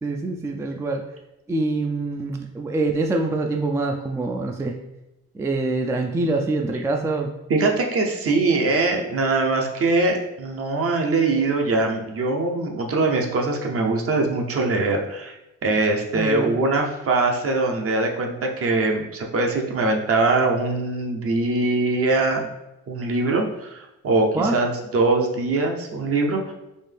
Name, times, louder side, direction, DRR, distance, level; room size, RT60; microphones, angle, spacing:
voice 1, 0.0-1.0 1.5-4.8 5.3-7.3 16.1-16.5 24.3-24.6, right 2 dB, 10° right, 2 dB, 0.3 m, -25 dB
voice 2, 7.5-15.4 15.6-22.5 22.9-26.5, right 3 dB, 50° right, 2 dB, 0.8 m, -22 dB
4.3 x 2.7 x 3.4 m, 0.92 s
cardioid pair, 90°, 30 cm